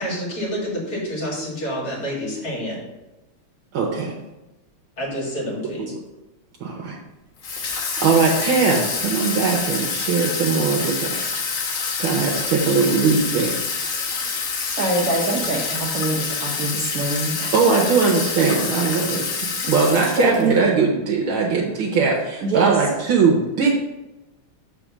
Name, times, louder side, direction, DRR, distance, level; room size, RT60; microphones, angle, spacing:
voice 1, 0.0-2.8 5.0-5.9, equal, 45° left, -3 dB, 2.5 m, -28 dB
voice 2, 3.7-4.2 6.6-7.0 7.5-11.3 12.0-13.6 17.5-19.2 19.7-23.7, right 5 dB, 70° right, -2 dB, 1.7 m, -20 dB
Water tap faucet / Sink (filling or washing), 7.4-20.6, left 5 dB, 75° left, 2.0 m, -27 dB
voice 3, 14.6-17.5 20.2-20.5 22.4-22.8, right 2 dB, 50° right, -3 dB, 1.3 m, -24 dB
6.8 x 4.4 x 6.0 m, 1.0 s
omnidirectional pair, 2.3 m